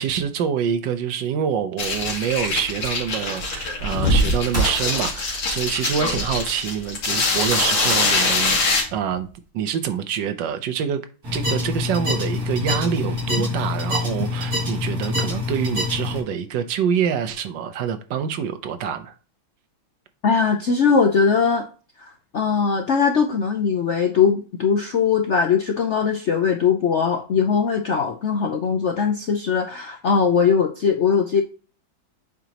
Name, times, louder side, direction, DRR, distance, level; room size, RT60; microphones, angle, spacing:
voice 1, 0.0-8.6 8.9-9.3 9.5-11.0 11.3-19.1, right 8 dB, 70° right, 1.5 m, -26 dB
sound 1, 1.8-8.8, left 2 dB, 85° left, 2.6 m, -23 dB
sound 2, 4.5-5.2 6.0-6.1 7.0-9.3, equal, 10° right, 1.3 m, -32 dB
sound 3, 11.2-16.2, left 2 dB, 50° right, 3.1 m, -25 dB
voice 2, 20.2-21.6 22.0-31.4, left 6 dB, 65° left, 0.7 m, -20 dB
7.9 x 4.7 x 2.9 m
omnidirectional pair, 2.1 m